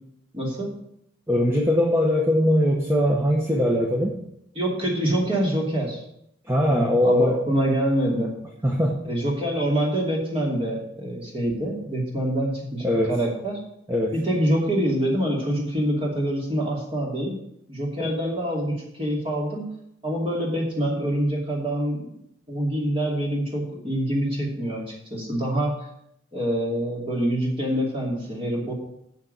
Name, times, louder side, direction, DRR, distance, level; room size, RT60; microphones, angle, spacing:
voice 1, 0.3-0.7 4.5-6.0 6.7-8.4 9.0-13.6 14.1-17.4 17.7-19.7 20.0-22.1 22.5-25.7 26.3-28.7, right 1 dB, 25° right, -2 dB, 2.6 m, -25 dB
voice 2, 1.3-4.2 6.5-7.4 8.6-9.0 12.8-13.1 13.9-14.1, left 1 dB, 10° right, -1 dB, 1.0 m, -21 dB
7.3 x 6.5 x 7.9 m, 0.75 s
head